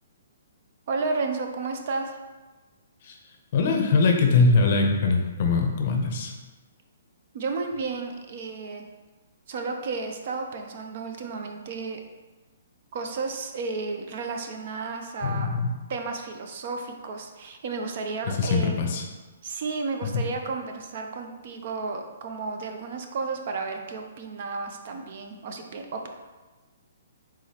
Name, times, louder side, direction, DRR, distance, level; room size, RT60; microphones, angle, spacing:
voice 1, 0.9-2.2 7.3-8.9 9.5-12.0 12.9-15.6 15.9-18.8 19.4-26.1, right 4 dB, 45° right, 4 dB, 0.5 m, -32 dB
voice 2, 3.5-6.3 15.2-15.7 18.3-19.0 20.1-20.2, left 4 dB, 40° left, 3 dB, 0.6 m, -22 dB
4.7 x 3.7 x 2.9 m, 1.2 s
hypercardioid pair, 165°, 0 cm